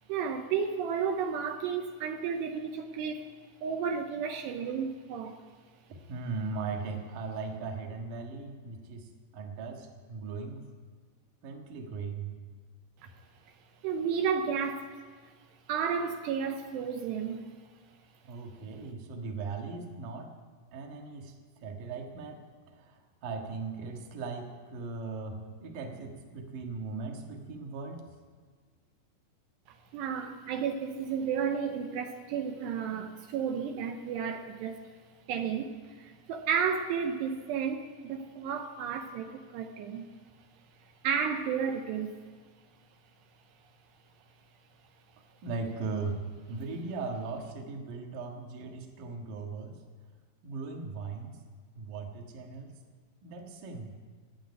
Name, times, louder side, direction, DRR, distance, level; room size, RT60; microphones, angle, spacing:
voice 1, 0.1-3.3 3.6-5.4 13.8-14.9 15.7-17.5 29.9-34.8 35.3-40.1 41.0-42.1, right 7 dB, 80° right, 5 dB, 2.9 m, -32 dB
voice 2, 6.1-10.7 11.4-12.4 18.3-20.3 20.7-28.1 45.4-49.8 50.4-51.4 51.7-52.7 53.2-53.9, right 4 dB, 60° right, 2 dB, 2.7 m, -38 dB
15.0 x 9.2 x 9.6 m, 1.5 s
omnidirectional pair, 4.9 m